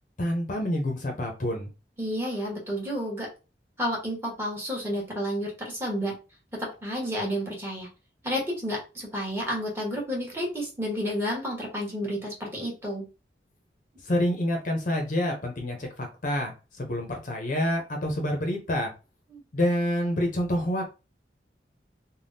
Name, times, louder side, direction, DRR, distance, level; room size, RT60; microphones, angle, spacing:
voice 1, 0.2-1.7 14.1-18.9 19.5-20.9, left 1 dB, 45° left, 2 dB, 0.6 m, -27 dB
voice 2, 2.0-3.3 3.8-6.1 6.6-7.9 8.2-13.0 19.3-19.4, equal, 15° right, -3 dB, 1.1 m, -31 dB
3.4 x 2.2 x 2.6 m, 0.31 s
head